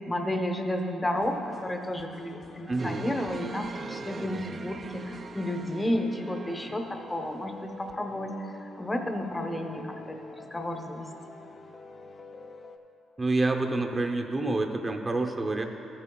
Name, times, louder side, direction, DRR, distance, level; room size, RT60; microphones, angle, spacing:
voice 1, 0.0-11.1, left 1 dB, 15° left, 4 dB, 0.8 m, -32 dB
sound 1, 1.1-12.8, left 3 dB, 45° left, 0.5 m, -48 dB
voice 2, 2.7-3.0 13.2-15.6, right 2 dB, 25° right, 4 dB, 0.7 m, -27 dB
sound 2, 2.8-7.1 7.9-8.0, right 4 dB, 40° right, 0.3 m, -40 dB
14.0 x 8.7 x 2.3 m, 2.8 s
cardioid pair, 90°, 0 cm